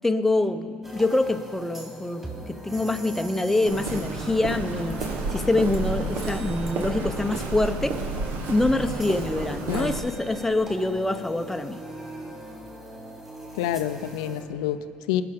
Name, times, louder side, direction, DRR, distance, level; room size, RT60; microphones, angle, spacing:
voice 1, 0.0-5.0 5.3-8.0 8.5-11.8, left 2 dB, 10° left, 8 dB, 0.8 m, -25 dB
sound 1, 0.8-14.4, right 1 dB, 10° right, 3.9 m, -41 dB
Walk footsteps, 3.7-10.0, right 3 dB, 70° right, 1.2 m, -31 dB
voice 2, 13.6-15.2, left 11 dB, 90° left, 12 dB, 0.5 m, -28 dB
20.0 x 6.8 x 5.3 m, 2.4 s
supercardioid pair, 75°, 4 cm